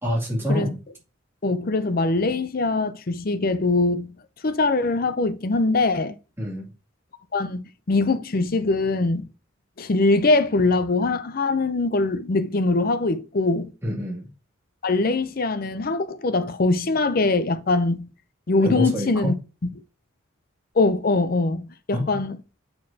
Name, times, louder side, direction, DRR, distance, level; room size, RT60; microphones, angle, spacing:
voice 1, 0.0-0.8 6.4-6.7 13.8-14.3 18.6-19.3 21.9-22.2, equal, 10° right, 2.4 m, -26 dB
voice 2, 1.4-4.1 4.4-6.2 7.3-9.3 9.8-13.7 14.8-18.1 18.5-19.4 20.8-22.4, left 3 dB, 45° left, 0.5 m, -22 dB
8.4 x 4.6 x 2.8 m
head